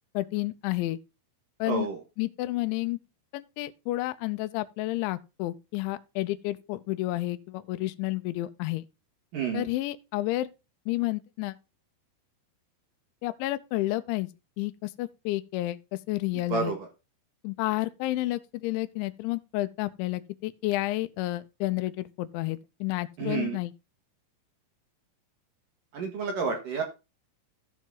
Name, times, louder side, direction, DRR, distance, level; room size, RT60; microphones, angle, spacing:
voice 1, 0.1-1.0 1.6-1.9 2.2-3.0 3.3-8.8 9.5-10.5 10.9-11.6 13.2-14.3 14.6-16.7 17.4-23.7, left 18 dB, 80° left, 2.8 m, -30 dB
voice 2, 1.7-2.0 9.3-9.7 16.5-16.9 23.2-23.6 25.9-26.8, right 6 dB, 60° right, 2.3 m, -30 dB
14.5 x 5.2 x 3.9 m
omnidirectional pair, 5.9 m